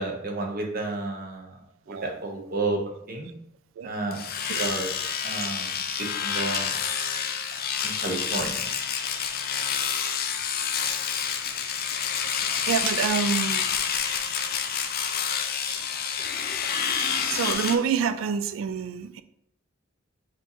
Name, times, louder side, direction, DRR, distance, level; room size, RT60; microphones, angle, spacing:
voice 1, 0.0-1.5 1.9-2.8 3.1-3.3 3.8-4.2 4.6-4.9 5.2-5.7 6.2-6.7 8.0-8.7, right 2 dB, 45° right, 0 dB, 0.9 m, -31 dB
Domestic sounds home sounds, 4.1-17.8, left 7 dB, 50° left, 0.5 m, -28 dB
voice 2, 12.7-13.7 17.3-19.2, right 7 dB, 80° right, 12 dB, 0.3 m, -27 dB
6.2 x 3.0 x 2.7 m, 0.75 s
head